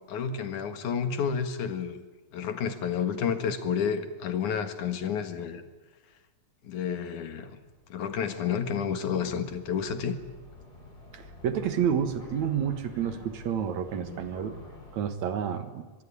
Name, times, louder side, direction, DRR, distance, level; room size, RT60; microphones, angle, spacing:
voice 1, 0.1-2.0 2.3-5.6 6.6-7.6 7.9-10.2, left 7 dB, 75° left, 9 dB, 3.2 m, -30 dB
sound 1, 6.9-15.0, left 1 dB, 30° left, 5.1 m, -49 dB
voice 2, 11.1-14.5 14.9-15.9, right 8 dB, 70° right, 10 dB, 2.8 m, -29 dB
23.5 x 23.0 x 9.9 m, 1.2 s
omnidirectional pair, 3.5 m